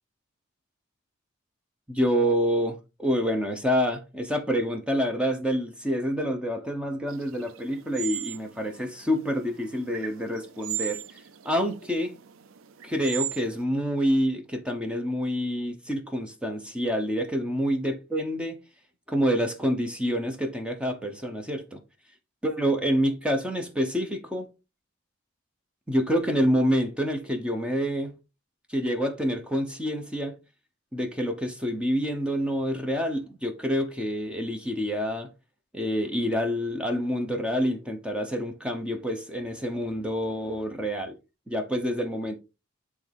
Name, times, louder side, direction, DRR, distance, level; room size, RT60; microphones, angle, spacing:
voice 1, 1.9-11.0 11.4-12.1 12.8-18.6 19.1-21.8 22.4-24.5 25.9-28.1 28.7-30.3 30.9-35.3 35.7-41.1 41.5-42.4, equal, 5° right, 0.9 m, -27 dB
sound 1, 7.1-13.6, right 11 dB, 80° right, 0.5 m, -38 dB
8.8 x 3.5 x 3.4 m
head